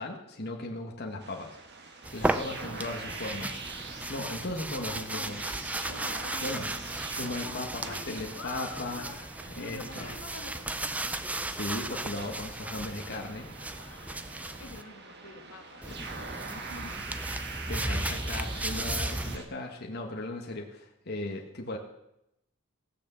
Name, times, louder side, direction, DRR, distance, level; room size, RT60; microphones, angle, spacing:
voice 1, 0.0-1.6 2.1-3.6 4.1-5.4 6.4-6.7 7.2-9.1 9.5-10.1 11.5-13.5 17.7-21.8, left 2 dB, 45° left, 1 dB, 1.5 m, -37 dB
sound 1, 1.2-19.4, right 4 dB, 50° right, 1.4 m, -44 dB
sound 2, 2.0-14.8 15.8-19.4, right 1 dB, 5° right, 0.4 m, -35 dB
voice 2, 2.5-3.3 4.1-4.4 4.7-6.9 7.4-9.2 9.6-11.1 13.8-14.1 14.6-17.1, left 3 dB, 75° left, 3 dB, 1.7 m, -47 dB
17.0 x 6.4 x 7.0 m, 0.84 s
head